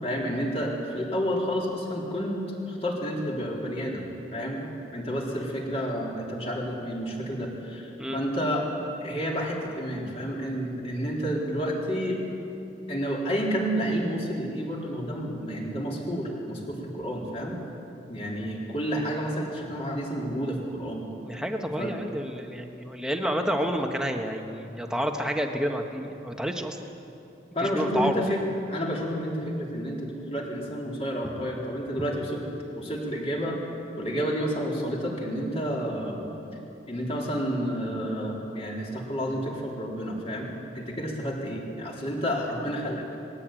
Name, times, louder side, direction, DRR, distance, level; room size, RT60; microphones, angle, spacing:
voice 1, 0.0-4.0 4.3-8.7 9.0-12.2 12.9-17.6 18.1-21.0 21.8-21.9 23.6-23.7 27.5-28.4 28.7-32.4 32.7-33.6 34.0-36.3 36.9-40.5 40.7-43.0, equal, 35° left, -2 dB, 3.8 m, -30 dB
voice 2, 21.2-26.8 27.6-28.4, equal, 5° right, 3 dB, 1.4 m, -29 dB
20.5 x 16.5 x 9.1 m, 2.9 s
head